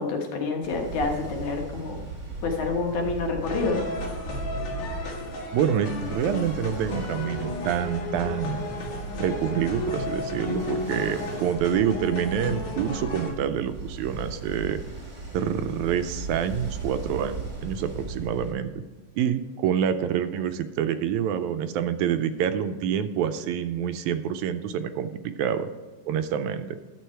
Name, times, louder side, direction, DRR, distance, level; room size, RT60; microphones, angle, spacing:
voice 1, 0.0-2.0 2.4-3.8, left 3 dB, 75° left, 1 dB, 2.8 m, -28 dB
Ocean, 0.6-18.5, right 4 dB, 20° right, 1.3 m, -38 dB
sound 1, 3.4-13.3, left 2 dB, 90° left, 3.2 m, -34 dB
voice 2, 5.5-8.7 9.2-14.8 15.3-17.4 17.6-18.8 19.2-25.7 26.1-26.8, right 8 dB, 80° right, 10 dB, 1.9 m, -27 dB
11.5 x 7.6 x 4.5 m, 1.3 s
omnidirectional pair, 3.5 m